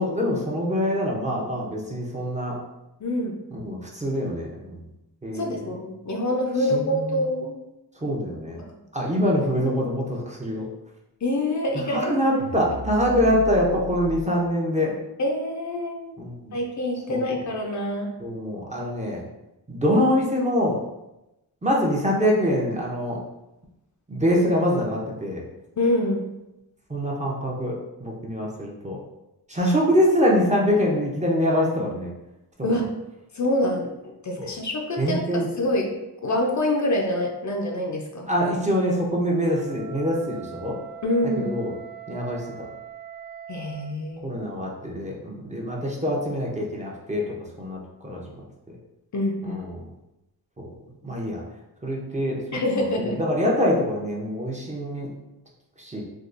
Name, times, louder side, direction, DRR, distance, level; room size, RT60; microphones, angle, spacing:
voice 1, 0.0-2.6 3.5-4.8 5.2-5.8 6.7-7.2 8.0-8.6 8.9-10.7 11.7-15.0 16.2-16.5 17.1-17.2 18.2-19.3 19.7-20.8 21.6-23.2 24.1-25.4 26.9-29.0 29.5-32.1 32.6-32.8 34.4-34.5 35.0-35.5 38.3-40.8 41.4-41.7 42.1-42.7 44.2-48.4 49.4-49.8 50.6-50.7 51.0-51.4 51.8-52.4 52.8-55.1 55.8-56.0, equal, 20° right, -3 dB, 0.6 m, -24 dB
voice 2, 3.0-3.4 5.3-7.6 9.0-9.1 11.2-12.4 15.2-16.1 16.5-18.1 25.8-26.2 29.6-29.8 32.6-32.9 33.3-35.9 36.2-38.3 41.0-41.5 43.5-44.4 49.1-49.6 52.5-53.2, left 1 dB, 45° left, 1 dB, 0.5 m, -26 dB
sound 1, 12.4-14.2, right 1 dB, 70° right, 0.5 m, -35 dB
Wind instrument woodwind instrument, 39.3-44.0, right 10 dB, 55° right, 0.8 m, -42 dB
3.5 x 2.3 x 2.5 m, 0.94 s
wide cardioid pair, 95°, 40 cm